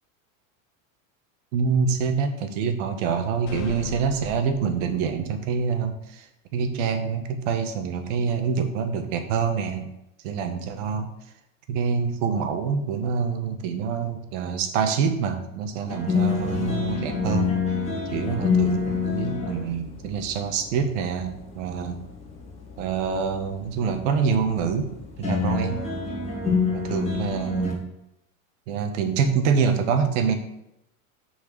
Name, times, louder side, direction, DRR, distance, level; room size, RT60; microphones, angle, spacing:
voice 1, 1.5-6.3 6.5-9.9 10.2-11.1 11.7-17.6 18.1-22.0 22.8-25.8 26.7-27.9 28.7-30.3, right 6 dB, 65° right, 7 dB, 1.3 m, -26 dB
sound 1, 3.5-5.1, left 5 dB, 55° left, 1.4 m, -37 dB
sound 2, 15.9-27.7, left 5 dB, 15° left, 2.2 m, -28 dB
6.9 x 4.8 x 6.6 m, 0.85 s
supercardioid pair, 155°, 40 cm